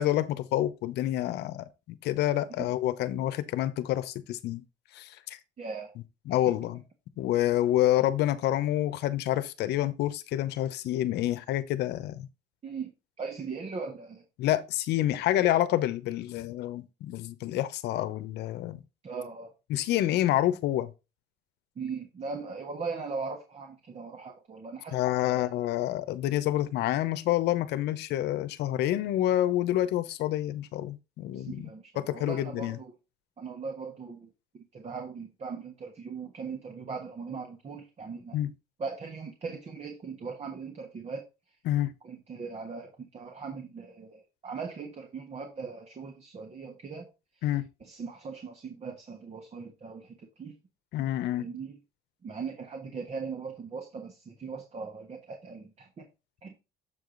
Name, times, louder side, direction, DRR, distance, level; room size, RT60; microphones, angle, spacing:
voice 1, 0.0-4.6 4.9-5.4 6.3-6.8 7.2-12.3 14.4-18.8 19.7-20.9 24.9-31.7 32.0-32.8 38.3-38.5 41.7-41.9 47.4-47.7 50.9-51.5, left 13 dB, 80° left, 0.8 m, -28 dB
voice 2, 5.6-5.9 12.6-12.9 13.2-14.2 19.0-19.5 21.7-25.0 25.2-25.5 31.3-32.9 33.4-34.3 34.7-38.4 38.8-41.2 42.0-47.1 47.4-47.5 47.8-50.5 51.4-51.8 52.2-56.1 56.4-56.5, right 5 dB, 40° right, 1.4 m, -39 dB
7.7 x 4.9 x 3.9 m
cardioid pair, 110°, 17 cm